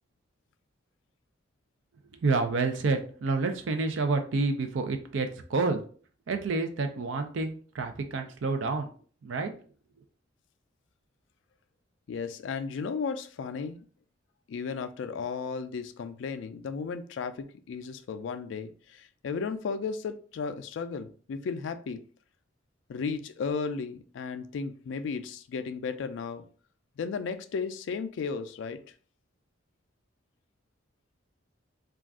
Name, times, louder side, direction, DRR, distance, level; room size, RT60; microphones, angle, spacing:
voice 1, 2.2-5.8 6.3-8.9 9.2-9.5, right 3 dB, 75° right, 6 dB, 0.4 m, -29 dB
voice 2, 12.1-13.9 14.5-22.0 22.9-26.4 27.0-28.8, left 5 dB, 70° left, 10 dB, 0.3 m, -34 dB
2.4 x 2.3 x 3.5 m, 0.43 s
head